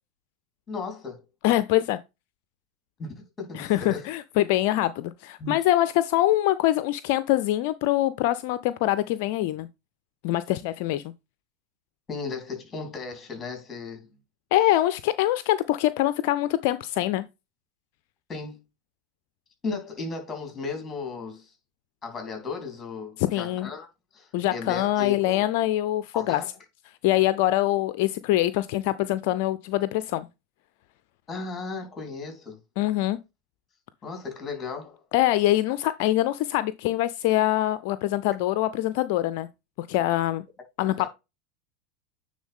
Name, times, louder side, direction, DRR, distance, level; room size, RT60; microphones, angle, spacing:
voice 1, 0.7-1.2 3.0-4.1 5.4-5.6 12.1-14.1 18.3-18.6 19.6-21.5 22.0-23.9 24.1-25.4 26.1-26.6 31.3-32.6 34.0-35.0 41.0-41.1, left 4 dB, 25° left, 3.8 m, -35 dB
voice 2, 1.4-2.0 3.5-9.7 10.2-11.0 14.5-17.3 23.2-23.7 24.3-26.4 27.0-30.3 32.8-33.2 35.1-39.5 39.8-40.4 40.8-41.1, left 15 dB, 60° left, 0.4 m, -24 dB
9.4 x 3.8 x 3.6 m
hypercardioid pair, 100°, 0 cm